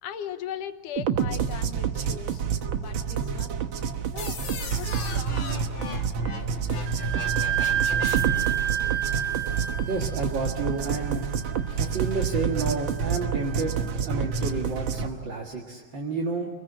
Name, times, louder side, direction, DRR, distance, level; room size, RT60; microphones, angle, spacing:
voice 1, 0.0-2.4 2.8-3.6 4.1-4.4 4.7-5.4, left 9 dB, 75° left, 9 dB, 2.6 m, -38 dB
sound 1, 1.0-15.1, right 7 dB, 80° right, 1.1 m, -28 dB
sound 2, 4.2-8.6, left 5 dB, 40° left, 1.9 m, -36 dB
Wind instrument woodwind instrument, 6.9-14.3, right 11 dB, 65° right, 3.0 m, -31 dB
voice 2, 9.8-11.3 11.7-13.8 14.0-16.5, right 3 dB, 40° right, -1 dB, 2.1 m, -30 dB
26.0 x 21.5 x 8.8 m, 1.5 s
omnidirectional pair, 3.8 m